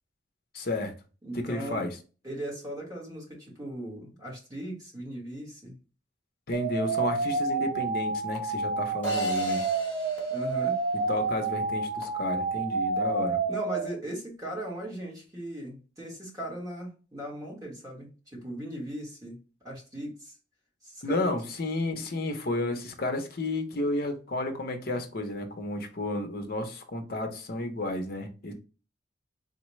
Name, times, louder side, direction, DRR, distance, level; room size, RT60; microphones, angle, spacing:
voice 1, 0.5-0.9 1.3-1.9 6.5-9.6 11.1-13.4 21.0-28.5, left 2 dB, 55° left, 6 dB, 0.7 m, -32 dB
voice 2, 1.2-1.9 2.2-5.8 10.3-10.8 13.5-20.3 20.8-21.3, right 1 dB, 20° right, -1 dB, 1.1 m, -38 dB
sound 1, 6.5-13.9, right 3 dB, 60° right, 1.0 m, -29 dB
sound 2, 9.0-11.4, left 1 dB, 10° left, 1.0 m, -40 dB
3.9 x 2.2 x 3.0 m, 0.34 s
head